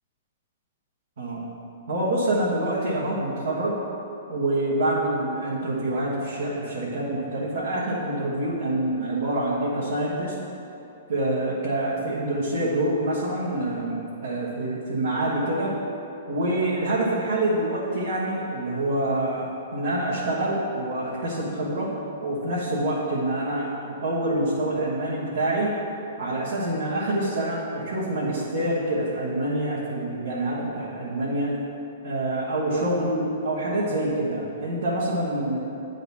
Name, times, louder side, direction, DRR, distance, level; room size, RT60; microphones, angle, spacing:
voice 1, 1.9-3.8 4.3-10.3 11.1-15.8 16.3-21.9 22.2-25.7 26.2-31.5 32.0-35.6, right 1 dB, 70° right, -9 dB, 1.4 m, -26 dB
9.2 x 4.0 x 4.1 m, 2.8 s
figure-of-eight pair, 110°, 0 cm